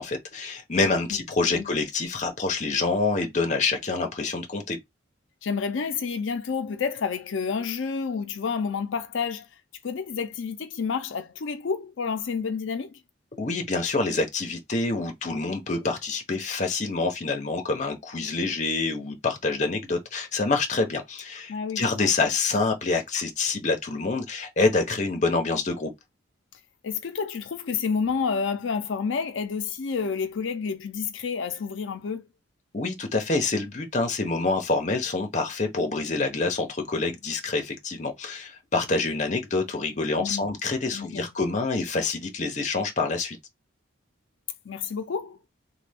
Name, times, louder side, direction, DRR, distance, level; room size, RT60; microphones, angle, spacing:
voice 1, 0.0-4.8 13.4-25.9 32.7-43.4, left 3 dB, 40° left, 0.7 m, -26 dB
voice 2, 5.4-9.5 9.8-13.0 21.5-22.1 26.8-32.2 40.2-40.5 40.9-41.3 44.7-45.4, left 5 dB, 85° left, 0.5 m, -29 dB
3.3 x 2.2 x 3.4 m
head